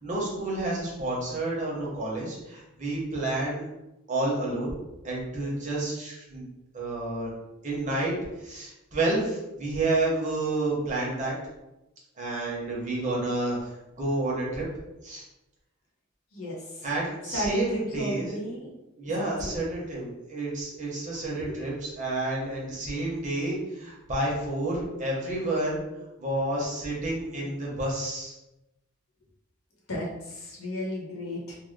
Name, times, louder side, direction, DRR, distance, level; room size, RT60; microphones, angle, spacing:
voice 1, 0.0-3.6 4.1-4.7 5.0-6.4 6.7-7.3 7.6-8.1 8.4-11.3 12.2-14.6 15.0-15.2 16.8-18.3 19.0-25.8 26.2-28.4, right 2 dB, 35° right, -5 dB, 1.0 m, -30 dB
voice 2, 16.3-16.9 17.3-18.7 19.2-19.5 21.3-21.4 29.9-31.6, equal, 85° left, -3 dB, 1.0 m, -34 dB
2.7 x 2.3 x 3.5 m, 0.95 s
head